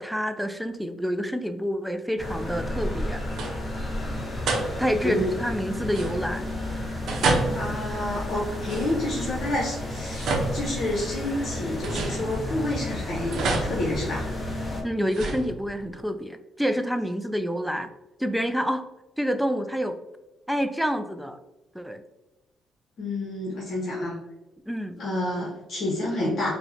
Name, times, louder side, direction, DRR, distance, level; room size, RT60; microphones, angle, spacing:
voice 1, 0.0-3.2 4.8-6.5 14.8-17.9 18.2-18.8 19.2-20.0 20.5-21.4 21.7-22.0 24.7-25.0, equal, ahead, 8 dB, 0.3 m, -28 dB
sound 1, 2.2-14.8, left 1 dB, 20° left, 0.9 m, -32 dB
sound 2, 3.3-3.8 4.5-5.1 5.9-6.6 7.1-9.3 9.9-11.3 11.8-12.8 13.3-14.6 15.1-16.0, right 3 dB, 70° right, 0.7 m, -30 dB
voice 2, 5.0-5.3 7.5-14.3 23.0-24.2 25.0-26.5, left 1 dB, 65° left, -4 dB, 0.8 m, -29 dB
4.5 x 2.1 x 2.7 m, 1.0 s
cardioid pair, 90°, 0 cm